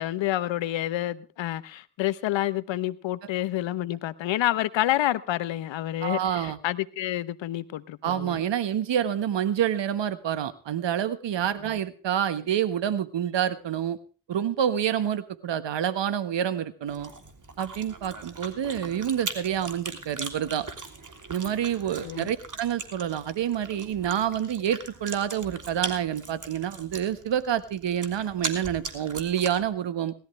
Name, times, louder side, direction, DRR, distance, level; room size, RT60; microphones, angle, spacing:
voice 1, 0.0-8.4 22.0-22.3, left 14 dB, 75° left, 1.0 m, -28 dB
voice 2, 6.0-6.6 8.0-14.0 14.3-17.1 17.6-20.7 21.3-30.1, right 9 dB, 65° right, 1.5 m, -28 dB
Chewing mastication, 16.9-29.7, right 4 dB, 40° right, 3.2 m, -39 dB
19.0 x 13.5 x 3.3 m
hypercardioid pair, 40°, 46 cm